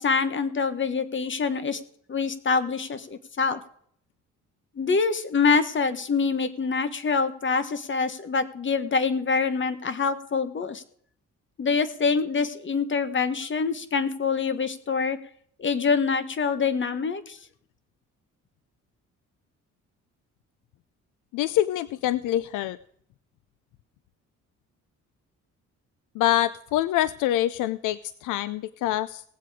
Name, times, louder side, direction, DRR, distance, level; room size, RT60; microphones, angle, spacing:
voice 1, 0.0-1.8 2.1-3.6 4.7-10.8 11.6-15.2 15.6-17.4, left 5 dB, 40° left, 12 dB, 1.5 m, -25 dB
voice 2, 21.3-22.8 26.2-29.2, left 13 dB, 90° left, 16 dB, 0.5 m, -25 dB
18.5 x 7.7 x 5.0 m, 0.64 s
cardioid pair, 90°, 30 cm